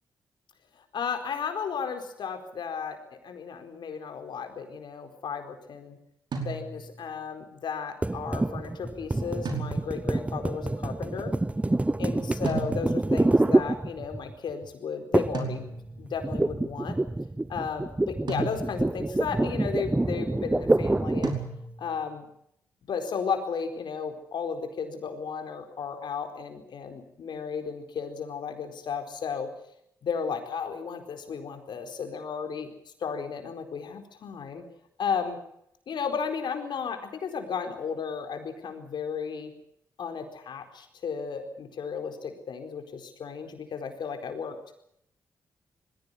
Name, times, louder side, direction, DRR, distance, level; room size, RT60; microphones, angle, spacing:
voice 1, 0.9-6.0 6.4-11.3 12.0-15.7 16.0-17.0 17.5-21.4 21.8-22.2 22.9-29.5 30.0-32.7 33.0-34.6 35.0-35.4 35.9-39.5 40.0-44.6, left 6 dB, 70° left, 6 dB, 4.4 m, -34 dB
Ganon High Tom Drum, 6.3-7.1 9.4-10.2 12.5-13.2 15.3-16.1 18.3-19.0 21.2-22.0, right 4 dB, 70° right, 4.9 m, -36 dB
sound 1, 8.0-14.3 15.1-15.5 15.8-21.5, right 2 dB, 15° right, 0.9 m, -27 dB
20.5 x 16.5 x 9.8 m, 0.74 s
supercardioid pair, 55°, 8 cm